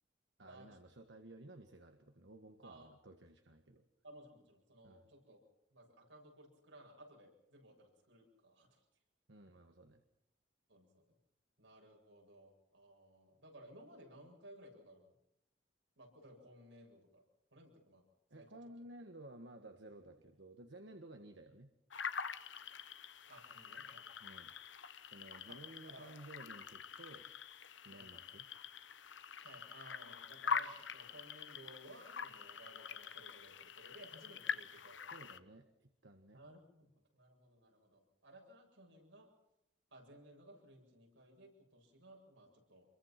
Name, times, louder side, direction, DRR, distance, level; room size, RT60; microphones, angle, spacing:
voice 1, 0.4-3.9 4.8-5.0 9.3-10.0 18.3-21.7 24.2-24.5 25.0-27.3 27.8-28.5 35.1-36.4, right 1 dB, 70° right, 5 dB, 1.7 m, -55 dB
voice 2, 4.0-5.4 5.7-8.8 10.7-11.2 11.6-15.1 16.0-17.2 17.5-18.1 18.3-18.5 23.3-24.2 25.5-25.6 25.9-26.1 27.9-28.2 29.4-35.0 35.2-35.5 36.3-39.3 39.9-42.8, right 1 dB, 90° right, 1 dB, 7.9 m, -59 dB
sound 1, 21.9-35.4, left 6 dB, 75° left, 1.1 m, -45 dB
27.5 x 23.0 x 6.0 m, 0.82 s
head